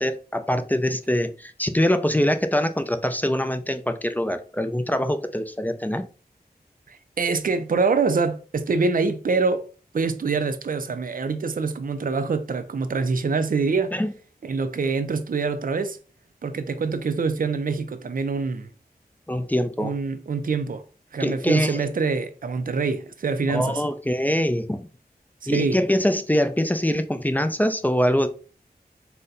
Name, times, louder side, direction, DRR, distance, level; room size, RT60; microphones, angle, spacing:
voice 1, 0.0-6.1 13.9-14.1 19.3-19.9 21.2-21.9 23.5-24.9 25.5-28.3, equal, 10° left, 0.5 m, -24 dB
voice 2, 6.9-9.7 9.9-13.9 14.4-16.0 16.4-18.7 19.8-20.8 21.1-23.8 25.4-25.8, right 4 dB, 60° right, 0.5 m, -25 dB
4.0 x 2.2 x 3.8 m
wide cardioid pair, 45°, 16 cm